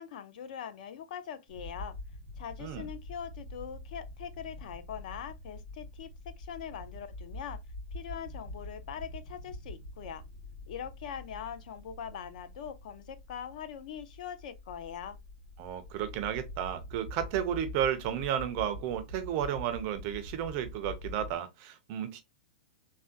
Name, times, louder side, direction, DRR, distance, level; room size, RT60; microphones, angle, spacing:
voice 1, 0.0-2.0 2.4-6.1 6.4-7.6 7.9-10.2 10.7-15.2, left 8 dB, 55° left, 0.5 m, -42 dB
sound 1, 1.5-21.3, left 1 dB, 35° left, 1.7 m, -45 dB
voice 2, 15.6-22.2, right 9 dB, 30° right, 0.4 m, -33 dB
3.4 x 2.1 x 2.6 m
supercardioid pair, 160°, 5 cm